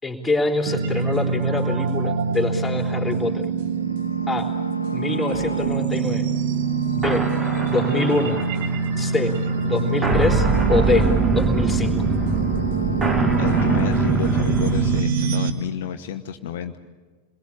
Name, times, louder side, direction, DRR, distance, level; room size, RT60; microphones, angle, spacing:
voice 1, 0.0-3.5 4.3-4.5 4.9-6.2 6.9-7.2 7.7-8.4 9.0-9.4 9.6-11.9, left 3 dB, 5° left, -1 dB, 3.7 m, -25 dB
sound 1, 0.7-15.5, right 5 dB, 50° right, 1.6 m, -24 dB
sound 2, 3.7-6.0 6.4-8.8 9.1-11.5 11.8-14.2, left 2 dB, 85° left, 0.8 m, -37 dB
sound 3, 5.3-15.0, right 3 dB, 15° right, 1.7 m, -24 dB
voice 2, 13.4-16.8, left 9 dB, 55° left, 6 dB, 1.0 m, -30 dB
28.0 x 22.0 x 8.7 m, 1.4 s
figure-of-eight pair, 90°, 0 cm